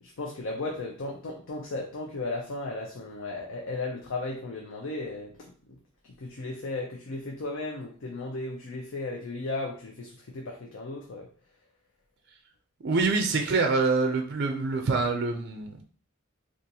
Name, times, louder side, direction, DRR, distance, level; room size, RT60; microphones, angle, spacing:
voice 1, 0.0-5.8 6.2-11.3, left 2 dB, 65° left, 0 dB, 0.5 m, -35 dB
voice 2, 12.8-15.8, right 3 dB, 55° right, 4 dB, 0.5 m, -25 dB
3.8 x 2.5 x 2.7 m, 0.43 s
head